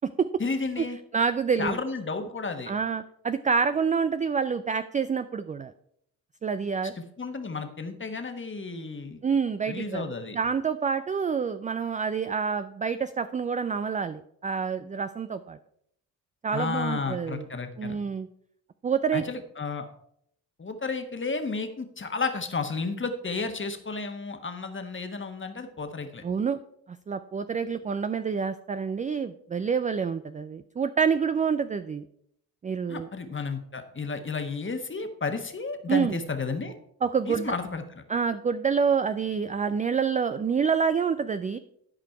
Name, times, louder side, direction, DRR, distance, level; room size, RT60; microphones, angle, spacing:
voice 1, 0.4-1.0 1.6-2.7 7.0-9.2 9.7-10.4 16.5-18.0 19.1-19.9 20.6-26.2 32.9-36.7 37.3-38.0, left 4 dB, 25° left, 7 dB, 1.4 m, -32 dB
voice 2, 1.1-1.8 2.7-5.7 6.4-6.9 9.2-10.1 10.3-15.6 16.4-17.5 17.8-18.3 18.8-19.2 26.2-26.6 26.9-32.1 32.6-33.1 35.9-36.2 37.0-37.5 38.1-41.6, right 6 dB, 20° right, 11 dB, 0.3 m, -27 dB
12.0 x 5.1 x 4.5 m, 0.70 s
hypercardioid pair, 50°, 45 cm